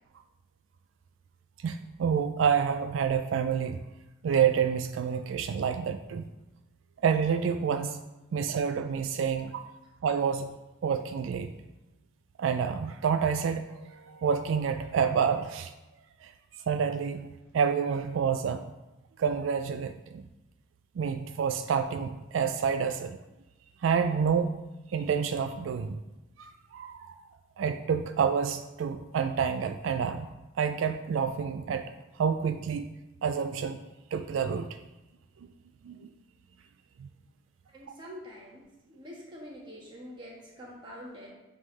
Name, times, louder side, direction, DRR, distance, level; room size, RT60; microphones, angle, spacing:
voice 1, 1.6-3.8 4.2-6.3 7.0-8.0 8.3-9.7 10.0-10.6 10.8-11.5 12.4-15.7 16.2-16.3 16.7-18.7 19.2-20.3 21.0-23.2 23.8-24.5 24.9-26.0 26.4-27.2 27.6-30.3 30.5-32.9 33.2-33.8 34.1-34.8 35.8-36.1 37.0-37.1, right 6 dB, 80° right, 7 dB, 0.3 m, -28 dB
voice 2, 37.7-41.3, equal, 25° right, -4 dB, 1.5 m, -46 dB
9.5 x 3.6 x 3.2 m, 1.0 s
head